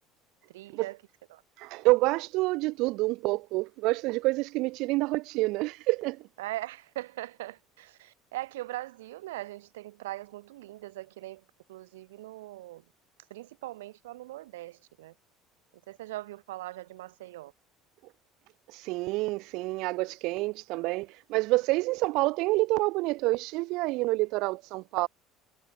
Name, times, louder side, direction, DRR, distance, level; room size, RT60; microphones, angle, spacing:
voice 1, 0.5-1.0 1.3-1.4 6.4-12.8 13.3-15.1 15.9-17.5, right 16 dB, 85° right, 4.8 m, -40 dB
voice 2, 1.6-6.3 18.7-25.1, right 22 dB, 70° right, 0.7 m, -28 dB
hypercardioid pair, 80°, 0 cm